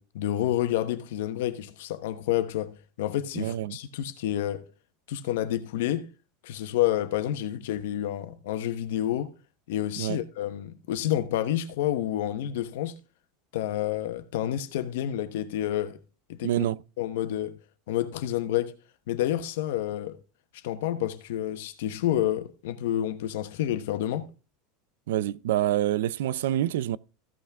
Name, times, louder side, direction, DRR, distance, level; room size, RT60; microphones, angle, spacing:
voice 1, 0.0-4.6 5.1-6.1 6.4-9.3 9.7-12.9 13.5-16.0 16.3-16.6 17.0-17.5 17.9-18.7 19.1-20.2 20.6-24.3, left 12 dB, 80° left, 1.1 m, -29 dB
voice 2, 3.3-3.8 10.0-10.2 16.4-16.8 25.1-27.0, right 12 dB, 85° right, 0.4 m, -26 dB
15.0 x 5.9 x 3.6 m
supercardioid pair, 155°, 0 cm